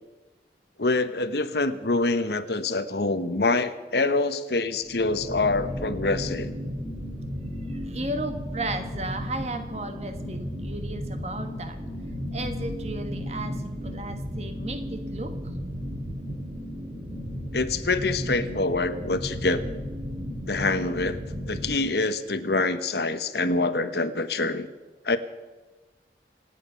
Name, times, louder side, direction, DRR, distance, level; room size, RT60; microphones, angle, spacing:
voice 1, 0.8-6.5 17.5-19.6 20.5-24.7 25.0-25.2, left 3 dB, 70° left, 11 dB, 1.1 m, -25 dB
sound 1, 4.7-21.8, equal, 15° right, 3.2 m, -34 dB
voice 2, 7.7-11.8 12.3-15.3, right 2 dB, 35° right, 7 dB, 1.5 m, -35 dB
27.0 x 9.0 x 5.8 m, 1.2 s
head